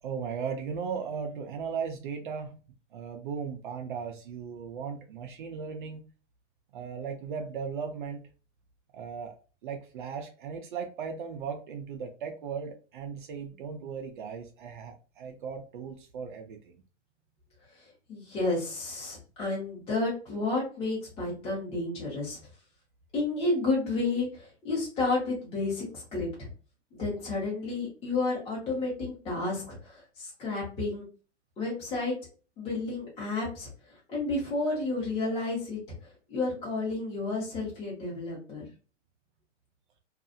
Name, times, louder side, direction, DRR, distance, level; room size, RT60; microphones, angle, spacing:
voice 1, 0.0-2.6 2.9-6.0 6.7-8.3 8.9-9.4 9.6-16.7, right 6 dB, 45° right, 3 dB, 0.5 m, -37 dB
voice 2, 17.8-22.4 23.1-26.5 27.0-31.0 31.6-32.2 32.6-38.7, left 3 dB, 15° left, -5 dB, 1.0 m, -31 dB
2.6 x 2.4 x 2.5 m, 0.37 s
hypercardioid pair, 155°, 36 cm